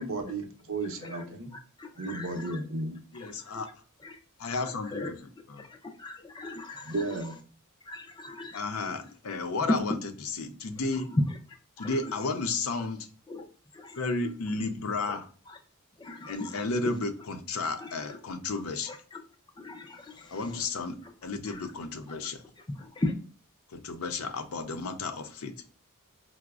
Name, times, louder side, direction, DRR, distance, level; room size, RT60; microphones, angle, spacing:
voice 1, 0.0-1.5 2.0-3.0 6.9-7.4, right 2 dB, 65° right, 5 dB, 0.6 m, -34 dB
voice 2, 1.5-2.6 3.1-3.7 4.0-4.2 4.6-5.1 5.6-7.3 7.8-8.7 9.0-9.1 9.7-9.8 10.9-12.3 12.8-12.9 13.3-13.5 13.7-14.0 15.0-15.2 15.5-15.6 16.0-16.9 17.8-18.2 18.5-19.2 19.6-20.7 21.0-21.1 21.5-21.7 22.2-22.3 22.6-23.2, left 1 dB, 20° left, 5 dB, 0.4 m, -37 dB
voice 3, 3.1-3.7 4.4-5.0 5.6-5.7 8.5-9.9 10.4-11.1 11.8-13.1 14.0-15.3 16.3-18.9 20.3-21.0 21.2-22.4 23.7-25.5, left 3 dB, 75° left, 8 dB, 0.5 m, -32 dB
4.8 x 2.0 x 2.3 m, 0.41 s
head